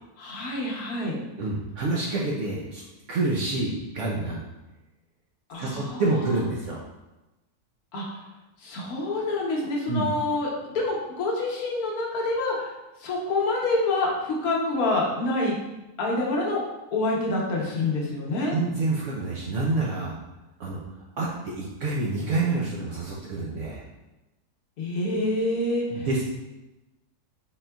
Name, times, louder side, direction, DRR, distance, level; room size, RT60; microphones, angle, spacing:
voice 1, 0.2-1.2 5.5-6.0 6.3-6.4 7.9-8.2 8.6-12.7 13.0-15.5 16.0-16.6 16.9-18.6 24.8-26.1, left 2 dB, 70° left, -2 dB, 1.2 m, -27 dB
voice 2, 1.4-2.8 3.1-4.4 5.6-6.8 9.9-10.1 18.5-20.2 20.6-20.8 21.2-23.8 25.9-26.2, right 3 dB, 65° right, -3 dB, 0.7 m, -27 dB
4.2 x 3.7 x 2.2 m, 1.0 s
omnidirectional pair, 1.7 m